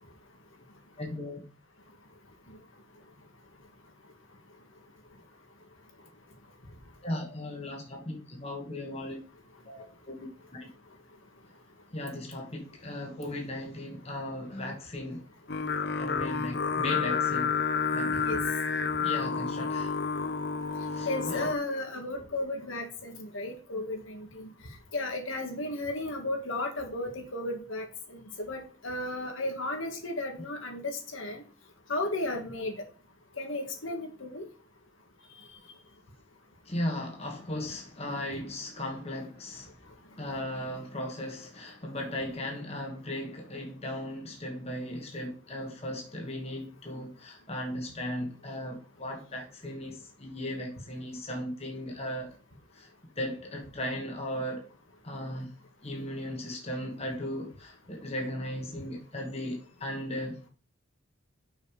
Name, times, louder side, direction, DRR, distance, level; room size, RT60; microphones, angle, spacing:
voice 1, 1.0-1.4 7.0-9.2 9.7-10.2 10.5-10.7 11.9-15.2 16.0-17.5 17.9-18.3 19.0-20.0 20.9-21.5 36.6-39.7 40.2-52.4 52.7-52.9 53.2-54.7 55.0-60.5, left 1 dB, 30° left, 1.5 m, -37 dB
Singing, 15.5-21.5, left 5 dB, 50° left, 0.7 m, -30 dB
voice 2, 21.1-24.5 24.9-27.8 28.1-28.2 28.5-30.8 31.1-31.4 31.9-32.7 33.4-34.4, left 2 dB, 75° left, 2.1 m, -34 dB
6.3 x 5.3 x 6.8 m
head